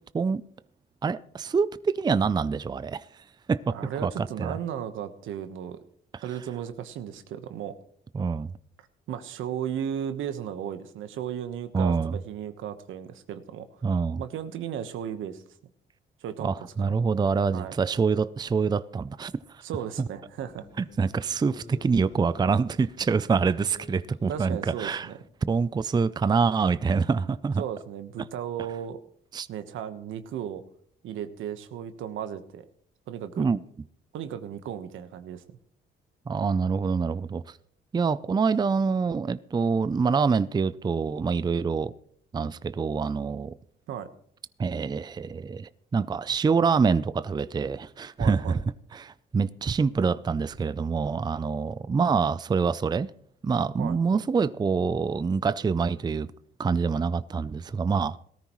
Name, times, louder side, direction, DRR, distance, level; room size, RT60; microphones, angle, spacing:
voice 1, 1.0-3.1 3.5-3.7 4.0-4.6 8.1-8.5 11.7-12.1 13.8-14.2 16.4-19.6 20.0-20.1 20.8-25.1 25.5-27.6 29.3-29.5 33.4-33.6 36.3-37.4 37.9-41.9 42.3-43.5 44.6-48.6 48.9-53.1 53.4-56.3 56.6-58.2, right 5 dB, 20° right, 0.4 m, -26 dB
voice 2, 3.7-5.8 6.2-7.8 9.1-13.7 14.2-15.4 16.2-16.9 17.5-17.7 19.6-20.7 24.3-25.2 27.6-29.0 29.5-30.6 31.0-32.6 33.1-33.5 34.1-35.4 43.9-44.1 48.2-48.6 53.8-54.2, right 9 dB, 85° right, 1.2 m, -35 dB
sound 1, 20.3-25.4, left 2 dB, 65° left, 4.2 m, -51 dB
18.0 x 13.5 x 3.1 m
cardioid pair, 90°, 20 cm